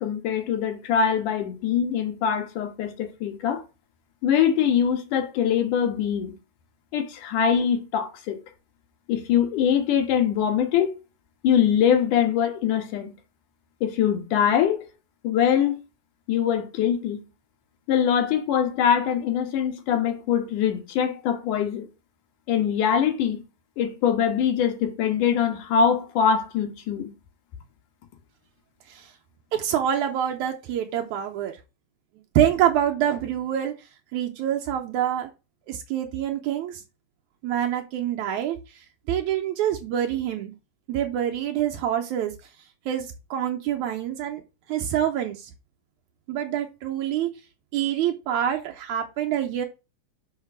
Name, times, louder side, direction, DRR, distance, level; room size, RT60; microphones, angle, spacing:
voice 1, 0.0-3.6 4.2-6.3 6.9-8.4 9.1-10.9 11.4-13.1 13.8-14.8 15.2-15.8 16.3-17.2 17.9-21.9 22.5-23.4 23.8-27.1, left 8 dB, 90° left, 2.9 m, -23 dB
voice 2, 29.5-31.6 32.4-33.7 34.1-35.3 35.7-36.8 37.4-40.5 40.9-42.3 42.9-44.4 44.7-45.5 46.3-47.3 47.7-49.7, right 10 dB, 80° right, 2.1 m, -26 dB
6.5 x 4.5 x 5.9 m
omnidirectional pair, 3.5 m